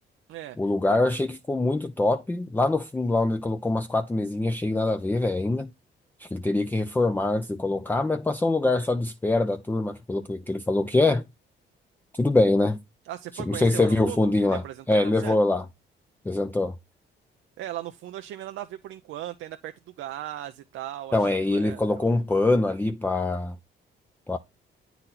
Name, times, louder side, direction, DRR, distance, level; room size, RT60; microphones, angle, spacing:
voice 1, 0.6-5.7 6.2-11.2 12.1-12.8 13.4-15.6 16.3-16.7 21.1-23.6 24.3-24.4, left 2 dB, 10° left, 0.4 m, -24 dB
voice 2, 13.0-15.4 17.6-22.1, right 13 dB, 80° right, 0.5 m, -38 dB
8.7 x 4.1 x 4.2 m
cardioid pair, 90°, 20 cm